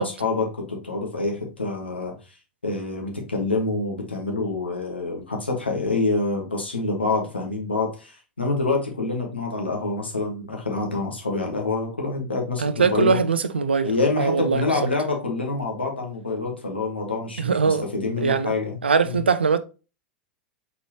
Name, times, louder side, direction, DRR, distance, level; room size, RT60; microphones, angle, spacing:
voice 1, 0.0-2.4 2.6-13.2 13.8-18.8 19.0-19.2, left 3 dB, 85° left, 1.3 m, -26 dB
voice 2, 12.6-13.9 14.2-14.6 17.4-17.8 18.2-18.5 18.8-19.6, right 5 dB, 85° right, 0.4 m, -21 dB
4.2 x 3.8 x 2.9 m
figure-of-eight pair, 90°, 6 cm